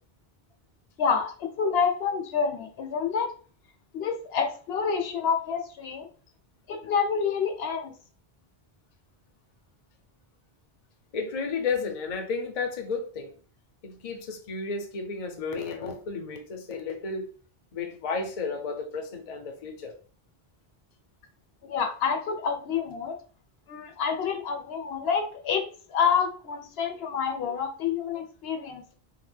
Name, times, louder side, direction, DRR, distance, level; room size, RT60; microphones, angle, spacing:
voice 1, 1.0-3.3 3.9-6.1 6.7-7.9 21.6-23.2 23.7-25.6 25.9-28.9, left 6 dB, 75° left, 5 dB, 0.8 m, -28 dB
voice 2, 11.1-13.4 13.8-17.3 17.7-19.9, left 4 dB, 45° left, 5 dB, 0.5 m, -32 dB
2.8 x 2.1 x 3.2 m, 0.40 s
omnidirectional pair, 1.0 m